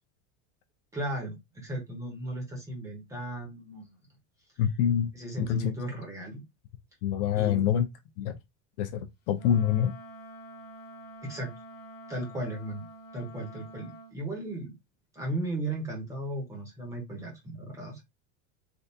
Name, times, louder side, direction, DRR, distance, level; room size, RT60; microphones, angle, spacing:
voice 1, 0.9-4.0 5.1-6.4 7.3-7.7 11.2-11.5 12.1-12.9 13.1-14.7 15.1-18.0, right 1 dB, 10° right, 0.7 m, -36 dB
voice 2, 4.6-5.1 5.4-5.6 7.0-7.9 8.2-8.4 8.8-9.9, left 9 dB, 50° left, 0.4 m, -26 dB
Wind instrument woodwind instrument, 9.3-14.2, right 1 dB, 30° left, 0.8 m, -47 dB
3.4 x 2.4 x 2.6 m
cardioid pair, 180°, 35 cm